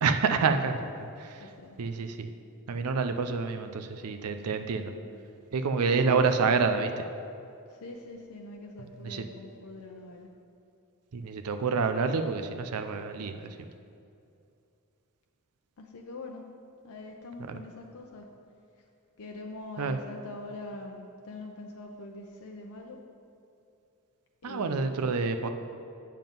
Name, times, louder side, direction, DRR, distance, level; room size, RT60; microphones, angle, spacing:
voice 1, 0.0-1.4 1.8-2.3 2.7-4.9 5.5-7.1 8.8-9.2 11.1-13.6 17.5-17.6 19.8-20.0 24.4-25.5, right 4 dB, 85° right, 8 dB, 0.5 m, -28 dB
voice 2, 1.4-1.8 7.7-10.3 15.8-16.4 16.8-18.3 19.2-23.0 24.4-25.2, left 2 dB, 70° left, 1 dB, 0.7 m, -43 dB
7.6 x 7.4 x 5.3 m, 2.6 s
head